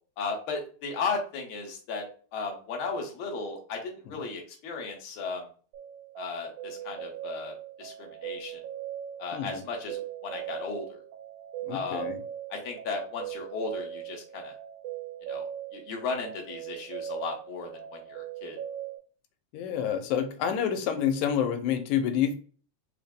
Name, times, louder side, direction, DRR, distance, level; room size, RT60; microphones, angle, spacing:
voice 1, 0.2-2.0 2.3-5.4 6.2-8.6 9.2-11.0 11.7-12.1 12.5-14.5 15.3-15.4 15.7-18.6, left 4 dB, 65° left, 1 dB, 1.4 m, -35 dB
sound 1, 5.7-19.0, right 10 dB, 90° right, 2.2 m, -40 dB
voice 2, 9.3-9.6 11.6-12.2 19.5-22.3, left 9 dB, 85° left, 7 dB, 2.0 m, -28 dB
4.8 x 2.1 x 3.4 m, 0.41 s
omnidirectional pair, 3.3 m